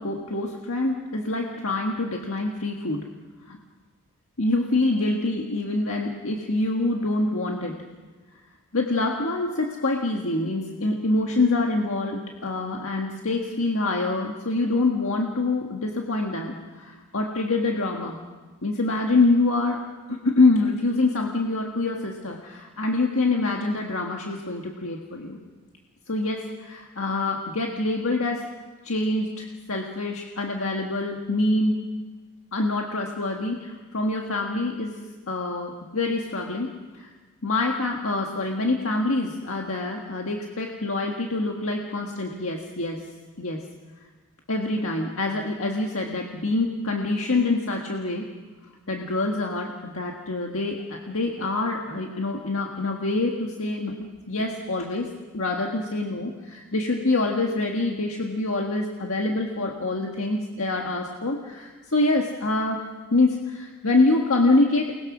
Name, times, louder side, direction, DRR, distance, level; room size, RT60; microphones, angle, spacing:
voice 1, 0.0-3.1 3.5-3.6 4.4-7.8 8.7-18.2 18.6-25.4 26.1-28.5 28.8-31.8 32.5-35.0 35.3-37.1 37.4-43.0 43.4-43.7 44.5-48.3 48.9-55.1 55.3-64.9, left 2 dB, 70° left, 1 dB, 1.7 m, -25 dB
29.5 x 20.5 x 6.2 m, 1.4 s
head